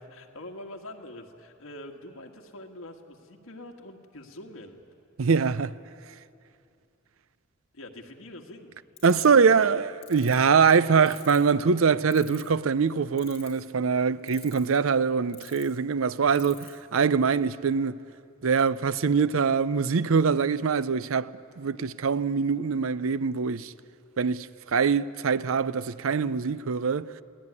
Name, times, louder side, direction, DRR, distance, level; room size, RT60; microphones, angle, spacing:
voice 1, 0.0-4.8 7.7-8.8 9.3-9.8, left 1 dB, 75° left, 1.8 m, -44 dB
voice 2, 5.2-5.7 9.0-18.0 18.4-23.7 24.2-27.1, right 5 dB, 75° right, 0.5 m, -23 dB
sound 1, 9.0-9.4 10.0-10.3 11.1-11.5 12.1-12.6 13.2-13.7 14.3-14.8 15.3-15.6 16.3-16.7, left 11 dB, 30° left, 5.6 m, -44 dB
22.0 x 17.0 x 9.7 m
head